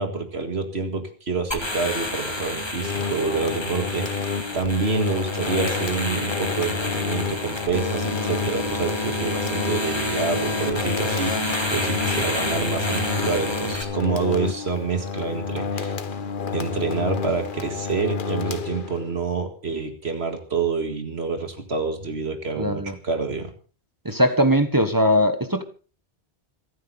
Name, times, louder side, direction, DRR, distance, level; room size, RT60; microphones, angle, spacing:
voice 1, 0.0-16.0 16.5-23.5, right 4 dB, 75° right, 2.2 m, -27 dB
sound 1, 1.5-13.8, left 1 dB, 25° left, 2.4 m, -29 dB
sound 2, 2.7-19.2, left 5 dB, 55° left, 1.1 m, -30 dB
voice 2, 22.6-22.9 24.0-25.6, equal, 20° right, 1.2 m, -20 dB
27.0 x 9.3 x 4.2 m
omnidirectional pair, 1.1 m